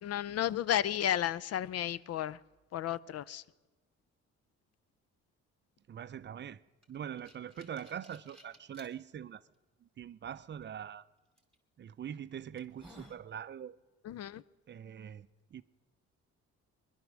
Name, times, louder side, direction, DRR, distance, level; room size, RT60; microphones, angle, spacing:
voice 1, 0.0-2.4 2.7-3.4 14.0-14.4, left 11 dB, 55° left, 0.4 m, -33 dB
voice 2, 5.9-6.6 6.9-9.4 10.0-11.0 11.8-13.8 14.7-15.6, right 9 dB, 40° right, 0.4 m, -43 dB
sound 1, 6.8-8.9 9.5-9.6 11.4-11.6 12.1-12.2 12.6-13.2, right 1 dB, ahead, 2.4 m, -56 dB
21.0 x 11.0 x 6.2 m
cardioid pair, 90°, 30 cm